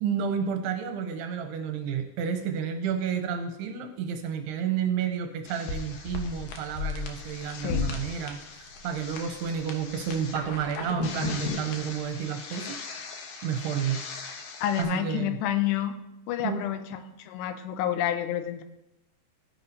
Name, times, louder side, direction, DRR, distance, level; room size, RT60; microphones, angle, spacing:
voice 1, 0.0-12.8 13.4-14.0 14.8-15.4 16.4-16.6, right 7 dB, 80° right, 6 dB, 2.6 m, -31 dB
sound 1, 5.5-14.8, left 5 dB, 70° left, 2.3 m, -36 dB
voice 2, 7.5-7.9 14.6-16.0 16.3-18.6, left 11 dB, 85° left, 8 dB, 2.8 m, -29 dB
14.5 x 10.0 x 2.7 m, 0.87 s
omnidirectional pair, 5.0 m